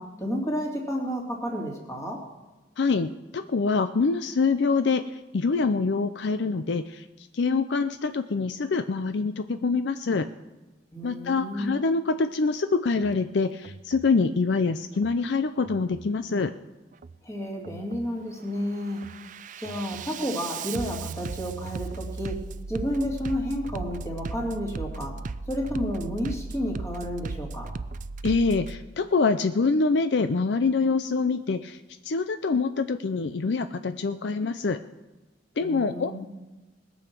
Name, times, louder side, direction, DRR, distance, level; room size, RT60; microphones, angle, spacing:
voice 1, 0.0-2.2 10.9-11.7 17.2-19.0 19.6-22.4 22.7-25.2 25.5-27.7 35.6-36.3, equal, 15° left, -1 dB, 2.7 m, -31 dB
voice 2, 2.8-7.0 7.3-10.3 11.0-16.5 28.2-31.8 32.0-34.8 35.6-36.2, left 4 dB, 65° left, 10 dB, 0.5 m, -25 dB
Bass drum, 12.9-13.2 13.6-14.1 14.9-15.2 15.6-16.1 16.9-17.2 17.6-18.1 18.6-28.8, right 4 dB, 45° right, 0.4 m, -37 dB
20.5 x 7.1 x 6.0 m, 1.1 s
head